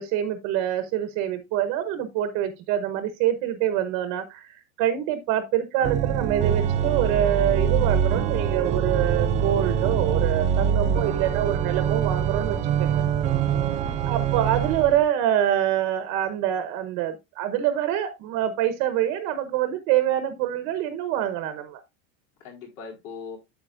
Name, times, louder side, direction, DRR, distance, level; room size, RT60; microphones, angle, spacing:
voice 1, 0.0-13.0 14.0-21.8, right 11 dB, 50° right, 1.1 m, -25 dB
Organ, 5.8-15.0, right 8 dB, 20° right, 0.3 m, -24 dB
voice 2, 10.8-11.4 13.6-14.3 22.4-23.4, left 5 dB, 65° left, 4.3 m, -42 dB
8.6 x 8.0 x 2.5 m
supercardioid pair, 165°, 37 cm